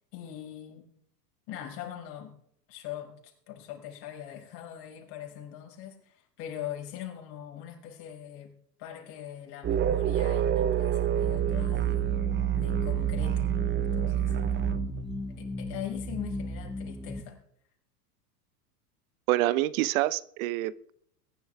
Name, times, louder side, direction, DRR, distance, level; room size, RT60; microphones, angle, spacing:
voice 1, 0.1-0.9 1.5-2.3 2.7-8.5 8.8-12.1 12.5-13.5 13.9-15.0 15.4-17.4, left 10 dB, 55° left, 5.8 m, -42 dB
sound 1, 9.6-15.1, right 11 dB, 25° right, 0.8 m, -27 dB
sound 2, 11.2-17.2, left 1 dB, ahead, 1.7 m, -36 dB
voice 2, 19.3-20.9, right 16 dB, 60° right, 1.0 m, -27 dB
22.5 x 11.5 x 3.5 m
hypercardioid pair, 100°, 48 cm